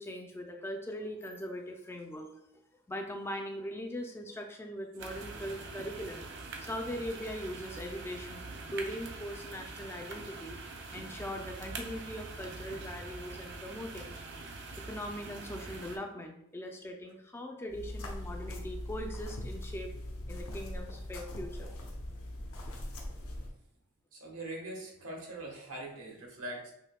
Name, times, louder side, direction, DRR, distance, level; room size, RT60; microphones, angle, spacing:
voice 1, 0.0-2.3 2.9-6.3 6.6-10.6 10.9-14.1 14.8-19.9 20.3-21.7, equal, 10° left, 3 dB, 0.3 m, -40 dB
sound 1, 5.0-16.0, right 3 dB, 50° right, 0.5 m, -44 dB
sound 2, 17.7-23.5, left 1 dB, 65° left, 0.7 m, -41 dB
voice 2, 24.1-26.7, right 1 dB, 75° right, -1 dB, 1.1 m, -42 dB
5.7 x 2.6 x 2.2 m, 0.81 s
head